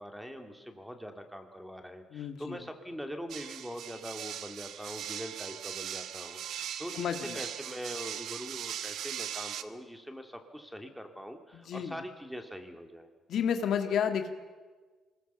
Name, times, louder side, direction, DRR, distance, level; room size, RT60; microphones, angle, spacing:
voice 1, 0.0-13.1, equal, ahead, 5 dB, 2.6 m, -43 dB
voice 2, 2.1-2.6 6.9-7.4 11.5-11.9 13.3-14.3, left 8 dB, 70° left, 7 dB, 1.8 m, -31 dB
sound 1, 3.3-9.6, right 10 dB, 75° right, 1.1 m, -39 dB
24.0 x 20.5 x 7.0 m, 1.4 s
cardioid pair, 90°, 0 cm